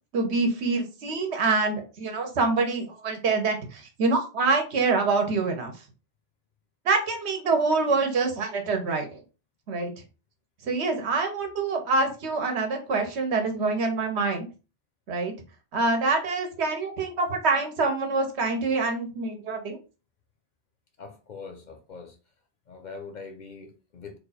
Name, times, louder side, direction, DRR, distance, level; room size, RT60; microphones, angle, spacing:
voice 1, 0.1-5.7 6.8-9.1 9.7-9.9 10.6-14.5 15.1-15.3 15.7-19.8, right 3 dB, 85° right, 1.2 m, -25 dB
voice 2, 21.0-22.2 22.7-24.2, left 4 dB, 55° left, 0.6 m, -42 dB
3.3 x 2.4 x 4.0 m
omnidirectional pair, 1.1 m